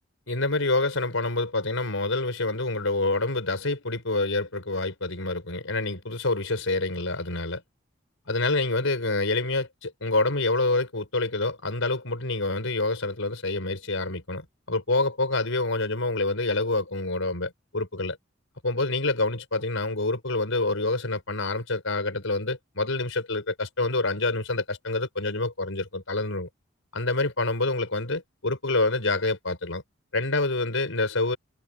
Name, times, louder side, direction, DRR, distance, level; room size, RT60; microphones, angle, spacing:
voice 1, 0.3-7.6 8.3-18.2 18.6-26.5 26.9-29.8 30.1-31.4, left 2 dB, 90° left, 4.8 m, -27 dB
head